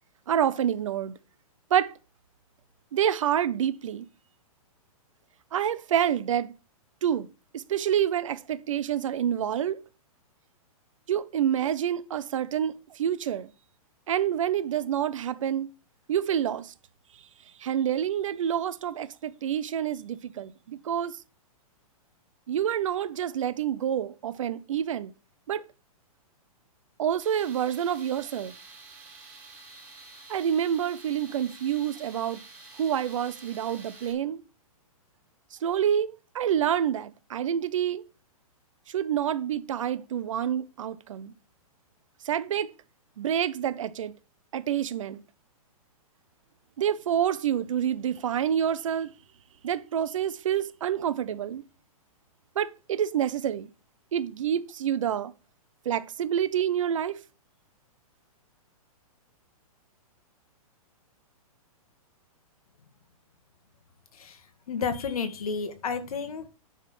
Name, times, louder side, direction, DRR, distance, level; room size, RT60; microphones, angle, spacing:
voice 1, 0.3-1.1 1.7-1.9 2.9-4.1 5.5-6.5 7.0-7.3 7.5-9.8 11.1-13.5 14.1-15.7 16.1-16.7 17.6-21.1 22.5-25.1 25.5-25.6 27.0-28.5 30.3-32.4 32.8-34.4 35.6-38.0 38.9-41.3 42.3-42.7 43.2-44.1 44.5-45.2 46.8-49.1 49.6-51.6 52.6-53.7 54.1-55.3 55.9-57.2, right 9 dB, 60° right, 0.7 m, -27 dB
Tools, 27.2-34.1, right 3 dB, 5° right, 1.6 m, -49 dB
voice 2, 64.7-66.5, left 5 dB, 70° left, 1.6 m, -31 dB
10.0 x 3.7 x 5.9 m
hypercardioid pair, 170°, 19 cm